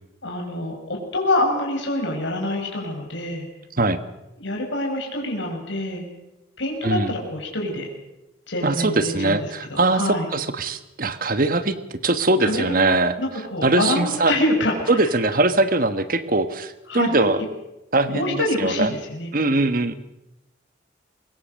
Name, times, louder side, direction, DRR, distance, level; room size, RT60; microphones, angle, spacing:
voice 1, 0.2-3.5 4.4-6.0 6.6-7.9 8.5-10.3 12.4-15.0 16.9-17.2 18.1-19.3, left 1 dB, 80° left, 0 dB, 5.4 m, -26 dB
voice 2, 6.8-7.1 8.6-13.2 13.6-14.3 14.9-17.4 17.9-18.9 19.3-19.9, right 2 dB, 50° right, 11 dB, 1.4 m, -21 dB
24.0 x 21.0 x 6.5 m, 0.96 s
head